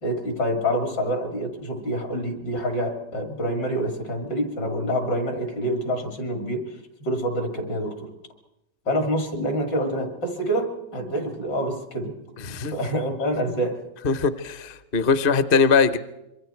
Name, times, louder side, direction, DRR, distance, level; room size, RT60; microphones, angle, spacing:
voice 1, 0.0-8.1 8.9-12.2 12.7-13.8, equal, 75° left, 4 dB, 3.6 m, -27 dB
voice 2, 12.4-12.7 14.0-16.0, left 5 dB, 45° left, 12 dB, 0.8 m, -21 dB
26.0 x 24.0 x 4.5 m, 0.91 s
omnidirectional pair, 1.9 m